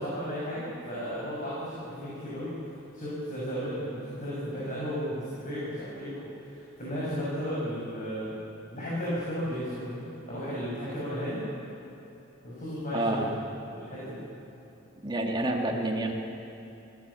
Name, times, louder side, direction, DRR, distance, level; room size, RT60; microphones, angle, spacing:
voice 1, 0.0-2.5 2.9-8.4 8.7-11.4 12.4-13.2 13.7-14.2, equal, 40° left, -7 dB, 6.4 m, -34 dB
voice 2, 12.9-13.3 15.0-16.1, right 1 dB, 20° right, 0 dB, 2.4 m, -28 dB
25.5 x 16.5 x 7.2 m, 2.9 s
head